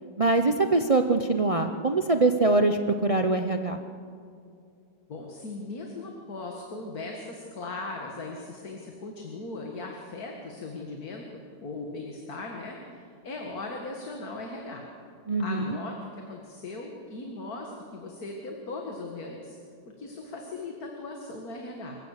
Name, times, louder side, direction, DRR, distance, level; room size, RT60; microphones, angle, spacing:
voice 1, 0.2-3.8 15.3-15.8, right 3 dB, 55° right, 7 dB, 0.3 m, -23 dB
voice 2, 5.1-11.3 11.6-14.8 15.4-19.6 20.0-22.0, left 3 dB, 55° left, 1 dB, 2.3 m, -38 dB
26.5 x 15.5 x 6.6 m, 2.3 s
omnidirectional pair, 1.9 m